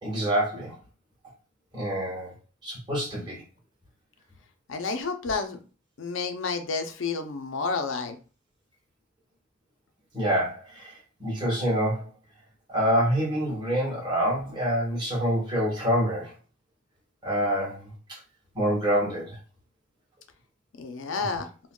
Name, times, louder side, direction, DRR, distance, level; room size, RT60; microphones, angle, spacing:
voice 1, 0.0-0.8 1.7-2.3 2.6-3.4 10.1-10.9 11.2-12.1 12.7-16.3 17.2-17.9 18.5-19.4 21.2-21.3, equal, 20° right, -5 dB, 1.3 m, -26 dB
voice 2, 4.7-5.6 6.0-8.2 20.8-21.5, left 4 dB, 65° left, 7 dB, 0.5 m, -30 dB
3.6 x 2.2 x 2.2 m, 0.35 s
head